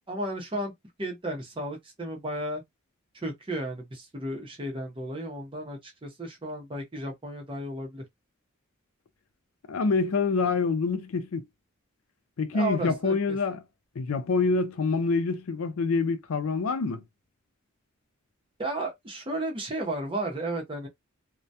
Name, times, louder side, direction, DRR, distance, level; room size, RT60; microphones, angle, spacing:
voice 1, 0.1-0.7 1.0-2.6 3.2-8.0 12.5-13.2 18.6-20.9, right 1 dB, 25° right, 0.7 m, -33 dB
voice 2, 9.7-11.4 12.4-13.6 14.0-17.0, left 4 dB, 70° left, 0.4 m, -26 dB
2.2 x 2.1 x 2.7 m
head